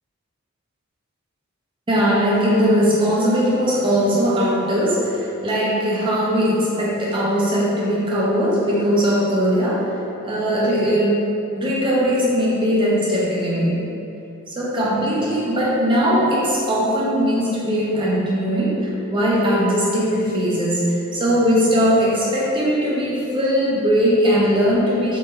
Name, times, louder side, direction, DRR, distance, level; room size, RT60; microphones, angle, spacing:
voice 1, 1.9-10.0 10.2-11.2 11.6-13.8 14.5-25.2, equal, 20° right, -6 dB, 0.5 m, -19 dB
2.9 x 2.6 x 2.3 m, 2.8 s
head